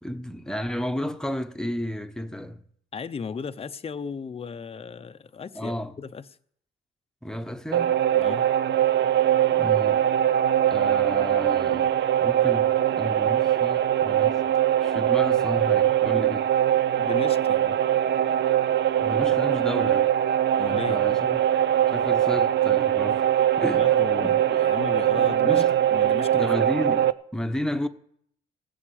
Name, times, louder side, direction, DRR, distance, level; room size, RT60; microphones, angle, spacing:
voice 1, 0.0-2.6 5.5-5.9 7.2-8.0 9.5-10.1 10.7-11.9 12.2-14.4 14.8-16.5 19.0-20.1 20.7-21.4 21.9-24.0 24.2-24.4 25.2-25.7 26.3-27.9, equal, 5° left, 1.0 m, -32 dB
voice 2, 2.9-6.2 8.2-8.4 17.0-17.8 20.6-21.0 23.7-25.6 25.9-26.7, left 5 dB, 30° left, 0.7 m, -35 dB
sound 1, 7.7-27.1, right 11 dB, 65° right, 0.6 m, -22 dB
16.5 x 7.5 x 8.7 m
cardioid pair, 90°, 20 cm